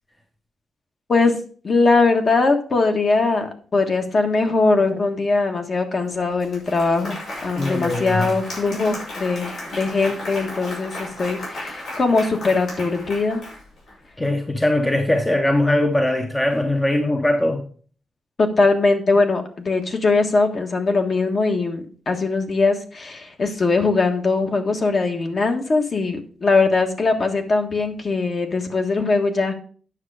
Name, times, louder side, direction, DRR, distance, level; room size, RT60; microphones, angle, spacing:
voice 1, 1.1-7.2 7.4-13.4 18.4-29.5, left 3 dB, 40° left, 1.4 m, -21 dB
Applause, 6.0-6.1 6.4-13.9, left 1 dB, 75° left, 5.8 m, -34 dB
voice 2, 7.5-8.3 14.2-17.6, left 1 dB, 10° left, 0.8 m, -21 dB
9.5 x 6.6 x 4.8 m
wide cardioid pair, 160°, 0 cm